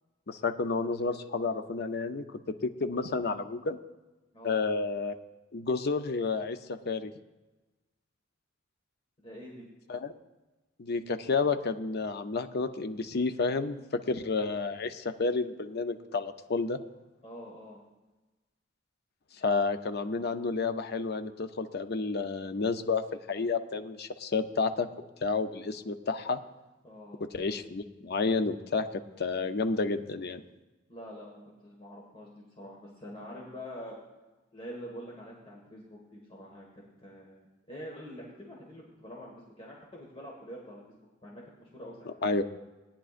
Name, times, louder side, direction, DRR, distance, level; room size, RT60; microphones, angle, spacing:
voice 1, 0.3-3.8 4.4-5.2 5.5-7.1 9.9-10.1 10.8-13.8 14.1-16.8 19.4-23.0 23.3-24.9 25.2-26.4 27.3-30.4 42.2-42.4, left 4 dB, 55° left, 9 dB, 0.6 m, -30 dB
voice 2, 9.2-9.7 17.2-17.8 26.8-27.2 30.9-34.0 34.5-42.1, equal, 30° left, -3 dB, 1.7 m, -46 dB
18.0 x 10.0 x 2.5 m, 1.1 s
head